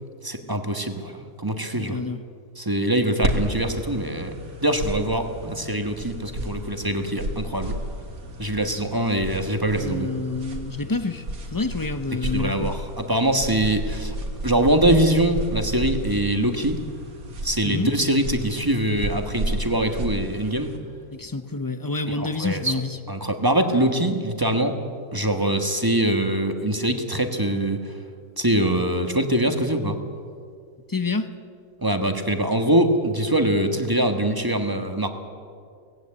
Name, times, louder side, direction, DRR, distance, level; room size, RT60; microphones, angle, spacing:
voice 1, 0.2-2.0 2.6-4.3 4.6-7.8 8.4-10.1 12.2-14.1 14.4-16.8 17.4-20.7 22.1-22.7 23.1-24.8 25.1-27.9 28.4-30.0 31.8-35.1, right 1 dB, 15° right, 5 dB, 1.3 m, -23 dB
voice 2, 1.8-2.2 9.7-11.3 11.5-12.7 17.6-17.9 21.1-23.0 30.9-31.3, left 3 dB, 30° left, 10 dB, 0.3 m, -28 dB
sound 1, 3.2-20.8, right 1 dB, 65° right, 2.4 m, -32 dB
19.0 x 16.0 x 8.7 m, 2.2 s
omnidirectional pair, 1.6 m